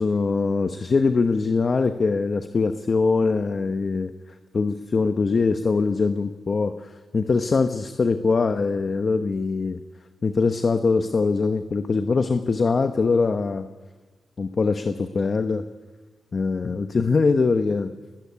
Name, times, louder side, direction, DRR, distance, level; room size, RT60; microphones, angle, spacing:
voice 1, 0.0-4.1 4.5-9.8 10.2-13.7 14.4-15.6 16.3-17.9, left 4 dB, 50° left, 8 dB, 1.1 m, -22 dB
19.5 x 18.5 x 9.8 m, 1.3 s
cardioid pair, 60°, 0 cm